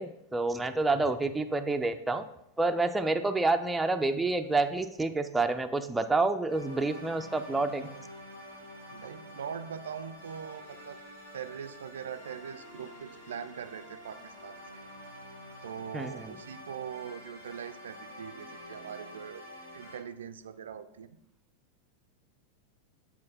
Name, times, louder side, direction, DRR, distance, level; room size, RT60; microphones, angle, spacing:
voice 1, 0.0-2.2 2.6-7.9 15.9-16.3, right 3 dB, 10° right, 6 dB, 0.4 m, -28 dB
sound 1, 6.5-20.0, equal, 70° left, 2.4 m, -48 dB
voice 2, 8.9-11.0 11.3-14.8 15.6-19.4 19.7-21.1, right 7 dB, 65° right, 10 dB, 0.4 m, -42 dB
8.5 x 4.3 x 4.1 m, 0.80 s
figure-of-eight pair, 90°, 0 cm